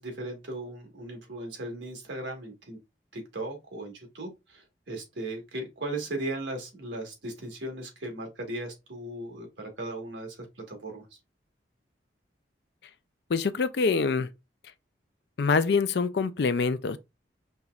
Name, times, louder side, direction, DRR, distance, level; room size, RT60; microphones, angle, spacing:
voice 1, 0.0-2.8 3.1-11.0, right 2 dB, 80° right, 1.5 m, -37 dB
voice 2, 13.3-14.3 15.4-17.0, left 4 dB, 65° left, 0.4 m, -25 dB
5.4 x 3.0 x 2.4 m
head